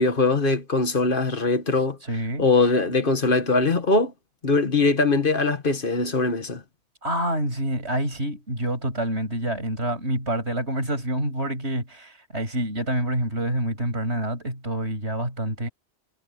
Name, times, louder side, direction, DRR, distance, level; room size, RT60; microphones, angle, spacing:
voice 1, 0.0-2.0 2.4-4.1 4.4-6.6, left 3 dB, 50° left, 1.9 m, -21 dB
voice 2, 2.1-2.5 7.0-15.7, right 1 dB, 85° right, 8.5 m, -27 dB
omnidirectional pair, 1.1 m